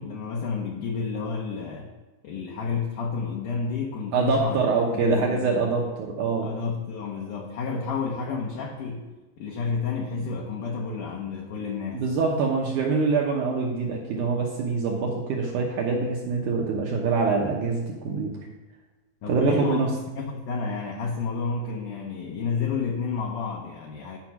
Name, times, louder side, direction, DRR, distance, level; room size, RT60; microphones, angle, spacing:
voice 1, 0.0-1.9 2.2-5.7 6.4-9.1 9.4-12.0 19.2-19.8 20.2-24.2, left 5 dB, 75° left, -1 dB, 1.9 m, -30 dB
voice 2, 4.1-6.5 10.2-10.3 11.9-18.4 19.3-19.9, right 4 dB, 70° right, -1 dB, 1.9 m, -25 dB
10.5 x 5.3 x 6.0 m, 1.2 s
omnidirectional pair, 4.8 m